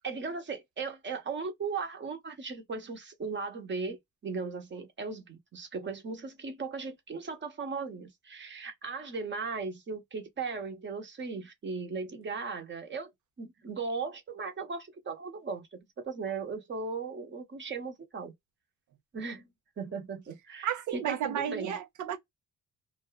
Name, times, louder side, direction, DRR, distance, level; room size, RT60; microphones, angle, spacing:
voice 1, 0.0-13.1 13.4-18.3 19.1-19.5 19.8-21.8, right 4 dB, 40° right, 1.0 m, -37 dB
voice 2, 20.6-22.2, right 9 dB, 75° right, 0.8 m, -33 dB
2.6 x 2.3 x 2.2 m
cardioid pair, 90°, 30 cm